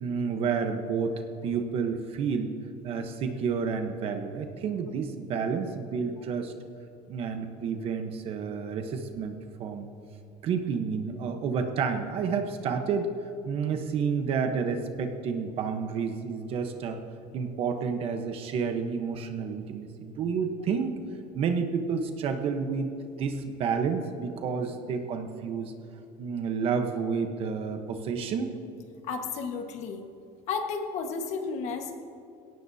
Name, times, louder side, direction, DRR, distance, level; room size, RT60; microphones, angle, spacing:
voice 1, 0.0-2.5 2.8-6.5 7.1-9.9 10.4-13.1 13.5-17.0 17.3-21.0 21.3-22.9 23.2-25.7 26.2-28.5, right 6 dB, 45° right, 6 dB, 1.1 m, -30 dB
voice 2, 29.1-30.0 30.5-32.1, left 5 dB, 50° left, 4 dB, 1.5 m, -33 dB
21.0 x 17.5 x 2.8 m, 2.7 s
cardioid pair, 165°, 14 cm